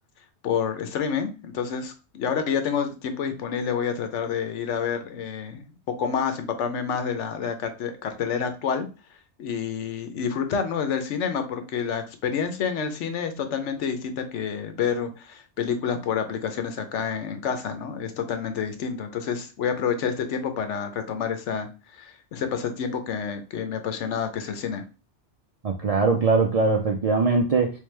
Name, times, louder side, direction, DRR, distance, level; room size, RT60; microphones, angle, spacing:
voice 1, 0.4-5.7 6.0-8.9 9.4-24.8, left 7 dB, 90° left, 1.0 m, -28 dB
voice 2, 25.6-27.8, right 4 dB, 55° right, 0.4 m, -21 dB
3.5 x 3.3 x 3.2 m
omnidirectional pair, 1.2 m